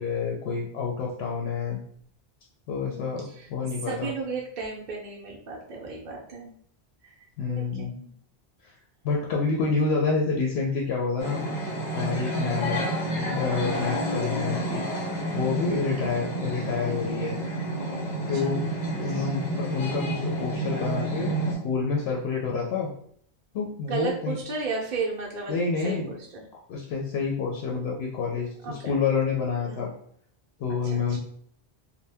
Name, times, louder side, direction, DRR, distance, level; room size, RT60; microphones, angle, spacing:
voice 1, 0.0-1.8 2.7-4.1 7.4-7.9 8.6-8.7 9.0-11.4 11.9-14.9 15.3-17.4 18.3-18.6 19.0-21.3 21.6-22.9 23.5-24.4 25.5-26.1 26.7-29.9 30.6-31.2, left 5 dB, 80° left, -1 dB, 0.8 m, -28 dB
voice 2, 2.8-3.5 3.9-6.5 7.0-8.1 12.5-12.9 16.0-16.2 18.3-18.6 19.0-19.3 23.8-25.5 25.8-26.4 28.6-29.0 29.6-29.9 30.7-31.2, right 4 dB, 55° right, -3 dB, 0.6 m, -35 dB
sound 1, 11.2-21.6, right 1 dB, 50° left, 0.7 m, -30 dB
2.6 x 2.1 x 3.3 m, 0.63 s
omnidirectional pair, 1.1 m